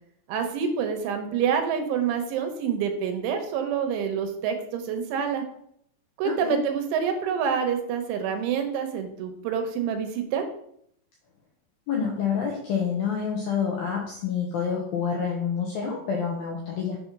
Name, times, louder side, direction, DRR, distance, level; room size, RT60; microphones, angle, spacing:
voice 1, 0.3-5.4 6.2-10.5, right 7 dB, 80° right, 5 dB, 3.3 m, -27 dB
voice 2, 6.2-6.6 11.9-17.0, left 6 dB, 80° left, -1 dB, 2.1 m, -28 dB
7.4 x 4.3 x 5.9 m, 0.69 s
omnidirectional pair, 5.7 m